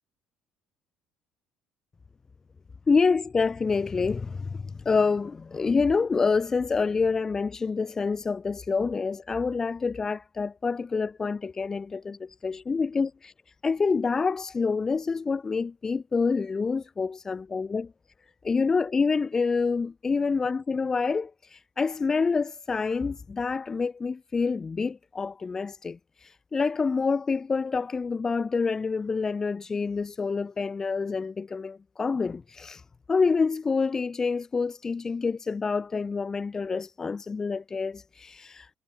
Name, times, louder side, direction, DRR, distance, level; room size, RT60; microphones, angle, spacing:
voice 1, 2.9-17.9 18.4-38.7, left 4 dB, 25° left, 4.3 m, -27 dB
cardioid pair, 110°, 2 cm